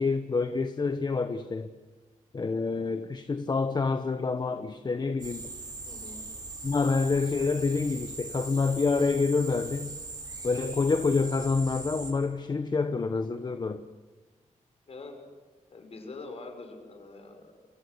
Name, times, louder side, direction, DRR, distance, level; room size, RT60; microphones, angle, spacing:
voice 1, 0.0-1.7 2.3-5.5 6.6-9.9 10.4-13.8, left 4 dB, 35° left, 1.0 m, -27 dB
sound 1, 5.2-12.1, right 3 dB, 30° right, 5.5 m, -40 dB
voice 2, 5.8-6.3 14.9-15.2 15.7-17.7, left 3 dB, 50° left, 6.3 m, -44 dB
29.0 x 24.5 x 8.1 m
wide cardioid pair, 135°, 13 cm